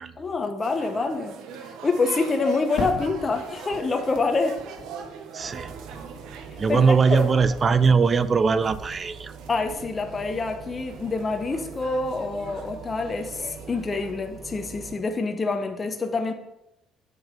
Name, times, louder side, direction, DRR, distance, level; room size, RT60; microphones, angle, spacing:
voice 1, 0.2-1.3 1.8-4.6 6.7-7.3 9.5-16.3, left 3 dB, 20° left, 5 dB, 0.6 m, -26 dB
sound 1, 0.6-14.1, right 6 dB, 75° right, 0.9 m, -43 dB
Fireworks, 2.8-7.1 7.4-8.2, left 3 dB, 40° left, 2.1 m, -39 dB
voice 2, 5.3-5.7 6.6-9.3, right 5 dB, 25° right, 15 dB, 0.4 m, -20 dB
sound 2, 5.4-15.0, right 5 dB, 45° right, 1.2 m, -43 dB
7.4 x 6.3 x 5.0 m, 0.85 s
cardioid pair, 170°, 0 cm